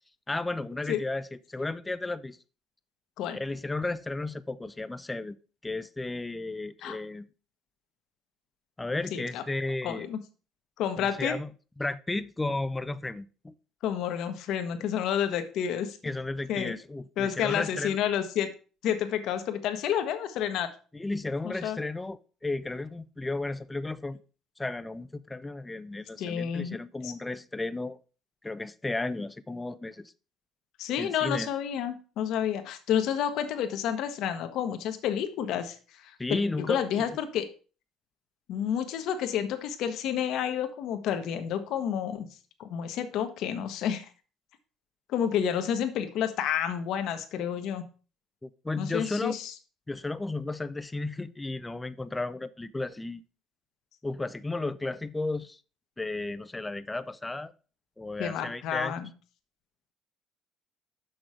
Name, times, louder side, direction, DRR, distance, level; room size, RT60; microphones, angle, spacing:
voice 1, 0.3-2.4 3.3-5.4 5.6-7.3 8.8-10.1 11.0-11.5 11.8-13.5 16.0-18.0 20.9-24.2 24.6-28.0 28.4-30.1 31.0-31.5 36.2-37.0 48.4-49.4 49.9-53.2 54.0-55.6 56.0-57.5 58.0-59.0, left 2 dB, 10° left, 0.4 m, -34 dB
voice 2, 9.1-9.4 9.8-10.2 10.8-11.3 13.8-16.0 16.5-16.8 17.2-18.5 18.8-20.7 21.4-21.8 26.2-26.8 27.0-27.1 30.8-35.8 36.0-37.4 38.5-42.3 42.6-44.1 45.1-47.8 48.8-49.5 58.2-59.1, left 9 dB, 70° left, 1.1 m, -30 dB
6.2 x 6.0 x 4.9 m
cardioid pair, 120°, 0 cm